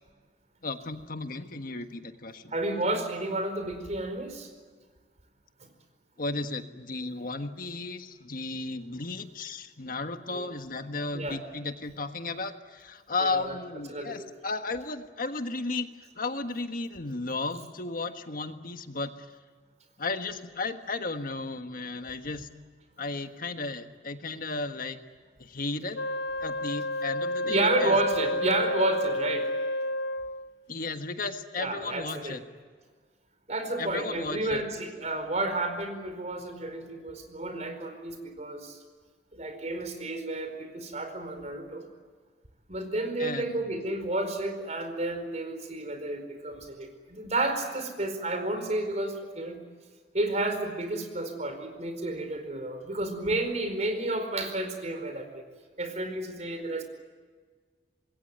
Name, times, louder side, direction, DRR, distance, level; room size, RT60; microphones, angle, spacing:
voice 1, 0.6-2.5 6.2-15.9 16.1-19.3 20.0-22.5 23.0-25.0 25.4-26.0 26.4-28.0 30.7-32.4 33.8-34.6 43.2-43.6, left 3 dB, 55° left, 7 dB, 1.5 m, -34 dB
voice 2, 2.5-4.5 5.6-5.7 10.3-10.5 11.1-11.4 13.2-13.6 13.9-14.1 27.4-29.5 31.6-32.4 33.5-38.8 39.3-41.8 42.7-49.6 50.1-55.4 55.8-56.8, right 2 dB, 40° right, 7 dB, 4.7 m, -31 dB
Wind instrument woodwind instrument, 25.9-30.6, left 1 dB, 75° left, 0.8 m, -30 dB
26.5 x 21.5 x 9.3 m, 1.5 s
head